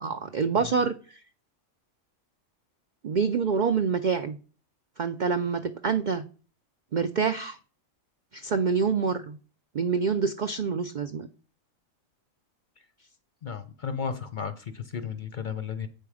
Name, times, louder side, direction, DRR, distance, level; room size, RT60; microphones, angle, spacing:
voice 1, 0.0-1.2 3.0-4.4 5.0-6.2 6.9-7.6 8.3-9.4 9.7-11.3, right 5 dB, 75° right, 9 dB, 0.4 m, -26 dB
voice 2, 13.4-15.9, left 6 dB, 45° left, 10 dB, 0.7 m, -34 dB
8.0 x 5.4 x 4.8 m, 0.38 s
omnidirectional pair, 1.4 m